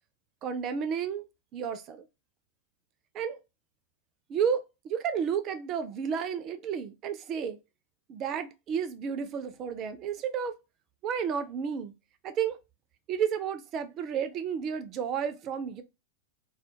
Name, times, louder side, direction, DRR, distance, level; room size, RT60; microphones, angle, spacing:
voice 1, 0.4-1.2 1.5-2.0 3.1-3.4 4.3-7.6 8.1-10.5 11.0-11.9 12.2-12.6 13.1-15.8, right 7 dB, 35° right, 0.3 m, -31 dB
2.2 x 2.1 x 2.7 m
figure-of-eight pair, 90°, 0 cm